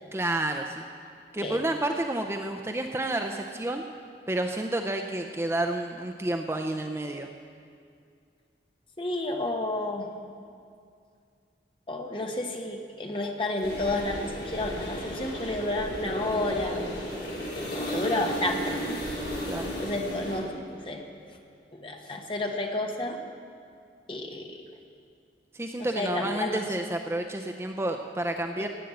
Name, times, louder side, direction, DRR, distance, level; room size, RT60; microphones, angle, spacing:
voice 1, 0.1-0.8 1.3-3.8 4.3-7.3 19.4-19.7 25.5-28.7, right 1 dB, 15° right, 4 dB, 0.5 m, -30 dB
voice 2, 9.0-10.1 11.9-16.8 17.7-19.1 19.8-21.1 21.7-23.2 24.1-24.6 26.0-26.6 28.6-28.7, left 2 dB, 30° left, 2 dB, 1.3 m, -31 dB
sound 1, 13.6-20.4, equal, 60° left, 3.7 m, -34 dB
16.5 x 9.1 x 7.8 m, 2.3 s
head